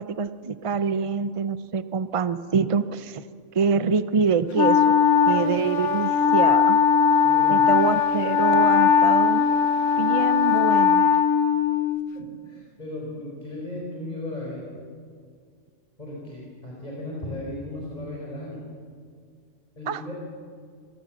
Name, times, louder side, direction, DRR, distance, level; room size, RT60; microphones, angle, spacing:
voice 1, 0.0-3.2 3.5-5.0 5.3-6.8 7.5-9.5 10.0-11.1 19.9-20.0, right 5 dB, 50° right, 13 dB, 0.4 m, -25 dB
Wind instrument woodwind instrument, 4.5-12.1, left 7 dB, 65° left, 1.2 m, -19 dB
voice 2, 7.2-7.7 12.1-14.8 16.0-18.6 19.8-20.1, left 1 dB, 30° left, -4 dB, 4.4 m, -36 dB
25.0 x 17.0 x 7.3 m, 2.1 s
omnidirectional pair, 1.4 m